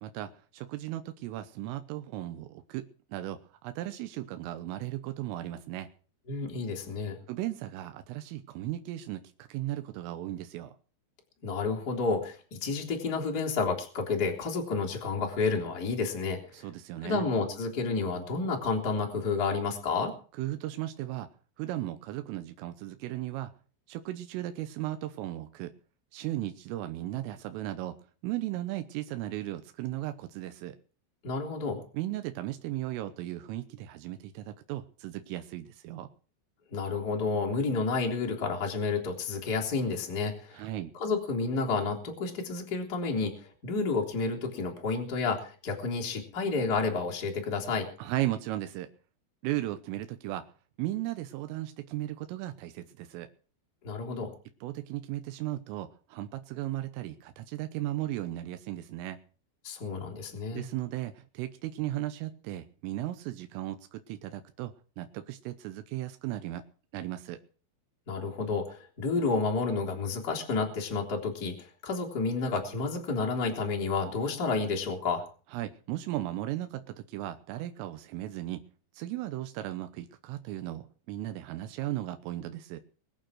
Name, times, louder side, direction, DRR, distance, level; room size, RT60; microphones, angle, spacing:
voice 1, 0.0-5.9 7.3-10.7 16.5-17.3 20.4-21.3 21.6-23.5 23.9-25.8 26.1-30.8 31.9-36.1 40.5-40.9 48.0-48.9 49.4-50.5 50.8-53.3 54.6-59.2 60.5-66.7 66.9-67.4 75.5-78.7 78.9-82.8, right 14 dB, 85° right, 9 dB, 3.6 m, -36 dB
voice 2, 6.3-7.2 11.4-16.7 17.0-20.1 31.2-31.8 36.7-40.6 41.0-43.3 43.6-47.9 53.8-54.3 59.6-60.6 68.1-75.2, left 4 dB, 20° left, 0 dB, 3.2 m, -30 dB
21.5 x 9.0 x 6.3 m, 0.40 s
omnidirectional pair, 5.8 m